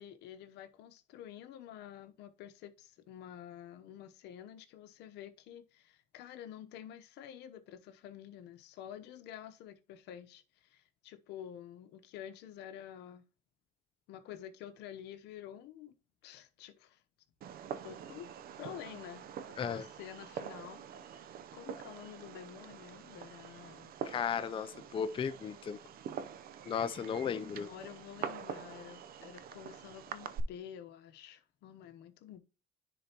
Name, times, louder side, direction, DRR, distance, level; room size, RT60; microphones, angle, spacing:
voice 1, 0.0-13.2 14.1-15.9 16.2-17.0 17.8-18.3 18.6-23.9 27.2-32.4, left 10 dB, 80° left, 0.9 m, -49 dB
Fireworks, 17.4-30.4, right 8 dB, 60° right, 0.6 m, -45 dB
voice 2, 24.0-25.8 26.7-27.7, left 7 dB, 30° left, 0.4 m, -35 dB
10.0 x 4.0 x 2.9 m
cardioid pair, 110°, 17 cm